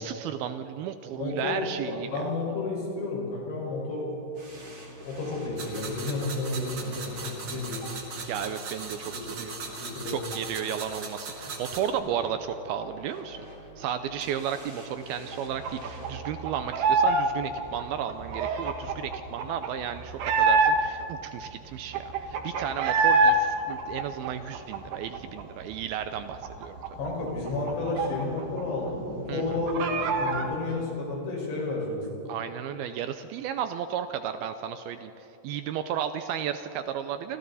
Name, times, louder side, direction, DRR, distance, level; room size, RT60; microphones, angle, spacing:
voice 1, 0.0-2.2 8.2-9.6 10.1-13.4 13.8-26.8 29.3-29.6 32.3-37.4, right 9 dB, 80° right, 9 dB, 2.3 m, -34 dB
voice 2, 1.1-4.0 5.1-7.8 9.1-9.4 9.8-10.2 27.0-29.8 30.1-32.0, left 2 dB, 80° left, -2 dB, 7.6 m, -31 dB
sound 1, 4.3-16.2, equal, 20° right, 4.7 m, -45 dB
sound 2, 5.6-11.9, right 4 dB, 40° right, 1.9 m, -39 dB
sound 3, 15.6-17.3 17.5-21.0 21.5-21.6 21.7-23.4 23.7-25.4 25.7-25.8 26.1-28.6 28.9-29.0 29.3-30.5, right 4 dB, 65° right, 2.9 m, -26 dB
28.0 x 25.5 x 4.2 m, 2.9 s
omnidirectional pair, 5.0 m